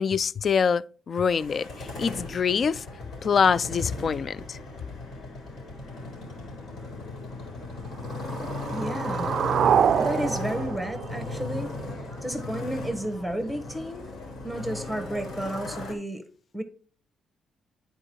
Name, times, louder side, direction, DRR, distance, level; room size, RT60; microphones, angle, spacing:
voice 1, 0.0-2.9 3.2-4.6, left 6 dB, 50° left, 0.3 m, -25 dB
Motorcycle, 1.3-15.9, left 2 dB, 65° left, 3.9 m, -36 dB
sound 1, 8.0-12.0, right 8 dB, 60° right, 0.3 m, -26 dB
voice 2, 8.7-9.4 10.0-14.1 14.4-16.2 16.5-16.6, right 1 dB, 5° left, 1.4 m, -32 dB
8.8 x 4.5 x 4.6 m
cardioid pair, 90°, 0 cm